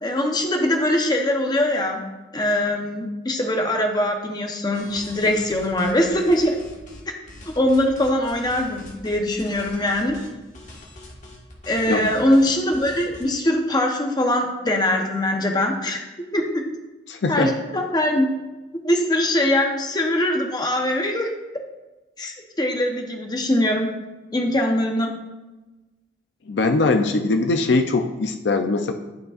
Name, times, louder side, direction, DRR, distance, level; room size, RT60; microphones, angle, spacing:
voice 1, 0.0-2.0 2.3-6.5 7.6-10.2 11.7-16.0 16.3-16.6 17.3-18.3 18.8-21.3 22.2-23.9 24.3-25.1, left 1 dB, 25° left, 3 dB, 0.9 m, -22 dB
sound 1, 4.7-7.0 7.3-13.2, left 1 dB, 45° left, 1.5 m, -43 dB
voice 2, 17.1-17.5 26.5-28.9, left 3 dB, 70° left, 6 dB, 0.5 m, -21 dB
12.0 x 5.2 x 2.5 m, 1.1 s
head